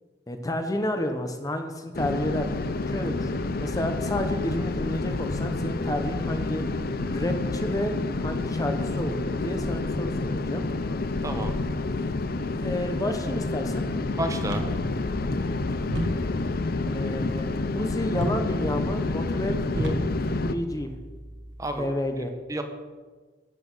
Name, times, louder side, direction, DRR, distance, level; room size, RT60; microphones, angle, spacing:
voice 1, 0.3-6.6 7.0-10.6 12.6-13.8 16.9-20.9 21.8-22.3, left 1 dB, 20° left, 6 dB, 0.8 m, -31 dB
sound 1, 1.9-20.5, left 3 dB, 55° left, 0.6 m, -29 dB
voice 2, 11.2-11.6 14.2-14.6 21.6-21.9 22.5-22.6, right 1 dB, 20° right, 5 dB, 1.0 m, -30 dB
sound 2, 14.4-21.8, right 1 dB, 75° right, 1.6 m, -36 dB
12.0 x 8.6 x 5.5 m, 1.4 s
head